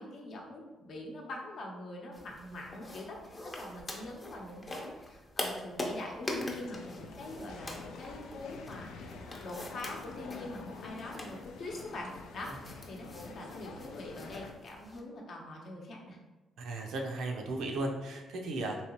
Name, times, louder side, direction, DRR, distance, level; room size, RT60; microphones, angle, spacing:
voice 1, 0.0-8.9 9.4-16.2, left 2 dB, 60° left, -1 dB, 0.7 m, -43 dB
sound 1, 2.1-15.0, left 1 dB, 25° left, 0.6 m, -44 dB
sound 2, 6.6-14.5, left 4 dB, 85° left, 0.3 m, -47 dB
voice 2, 16.6-18.8, right 2 dB, 80° right, 2 dB, 0.5 m, -35 dB
3.1 x 2.8 x 2.9 m, 1.1 s
cardioid pair, 90°, 0 cm